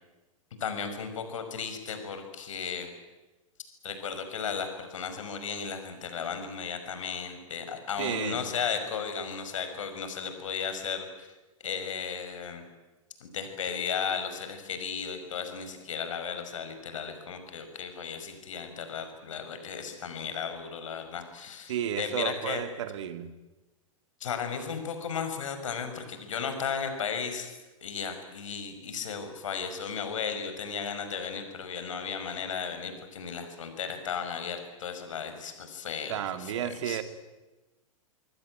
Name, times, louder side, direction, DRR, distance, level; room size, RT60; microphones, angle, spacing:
voice 1, 0.6-2.9 3.8-11.3 11.6-12.6 13.2-22.6 24.2-37.0, left 6 dB, 60° left, 8 dB, 5.7 m, -35 dB
voice 2, 8.0-8.5 21.7-23.3 36.1-37.0, right 10 dB, 55° right, 10 dB, 2.5 m, -32 dB
26.5 x 22.5 x 9.3 m, 1.1 s
figure-of-eight pair, 100°, 18 cm